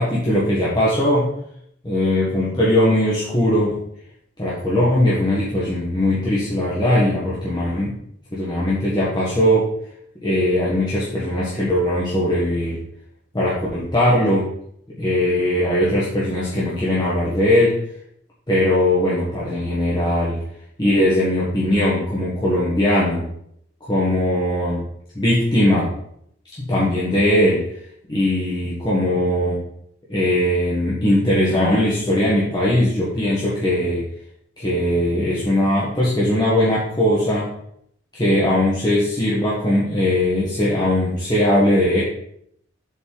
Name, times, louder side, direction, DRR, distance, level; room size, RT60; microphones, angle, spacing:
voice 1, 0.0-1.3 1.8-3.8 4.4-7.9 8.3-9.7 10.2-12.8 13.3-14.5 15.0-17.8 18.5-20.4 20.8-23.2 23.8-24.8 25.1-25.9 26.6-27.6 28.1-29.6 30.1-34.0 34.6-37.5 38.1-42.0, left 1 dB, 25° left, -8 dB, 1.4 m, -19 dB
6.9 x 4.3 x 4.7 m, 0.71 s
head